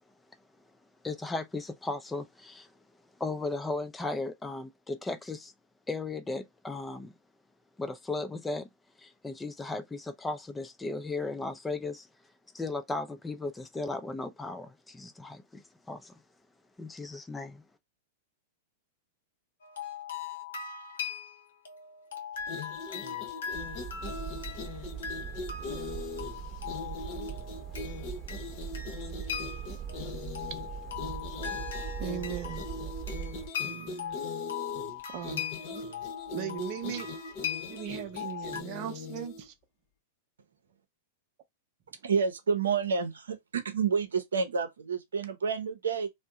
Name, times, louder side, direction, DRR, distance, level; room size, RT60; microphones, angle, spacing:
voice 1, 1.0-2.7 3.2-5.5 5.9-7.1 7.8-8.7 9.0-12.1 12.5-16.2 16.8-17.6, left 3 dB, 10° left, 0.5 m, -36 dB
sound 1, 19.6-38.6, left 8 dB, 80° left, 0.8 m, -40 dB
sound 2, 22.4-39.5, left 4 dB, 45° left, 0.8 m, -41 dB
sound 3, 23.5-33.5, right 8 dB, 20° right, 0.9 m, -41 dB
voice 2, 32.0-32.7 33.6-34.2 35.1-35.5 36.3-37.1 37.7-39.5, right 10 dB, 45° right, 0.7 m, -38 dB
voice 3, 42.0-46.1, right 5 dB, 80° right, 0.7 m, -29 dB
2.6 x 2.1 x 3.6 m
hypercardioid pair, 105°, 0 cm